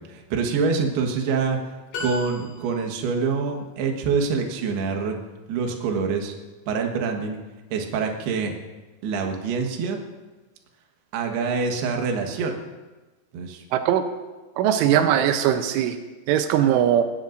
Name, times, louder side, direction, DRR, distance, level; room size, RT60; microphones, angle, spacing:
voice 1, 0.0-1.6 2.0-5.2 5.5-6.3 6.7-7.4 7.7-8.5 9.0-10.0 11.1-12.6 13.3-13.6, right 5 dB, 65° right, 3 dB, 3.2 m, -25 dB
sound 1, 1.9-3.1, left 4 dB, 80° left, 6.5 m, -35 dB
voice 2, 13.7-14.0 14.6-16.0 16.3-17.0, right 10 dB, 90° right, 7 dB, 3.3 m, -20 dB
19.0 x 17.5 x 2.6 m, 1.2 s
omnidirectional pair, 5.4 m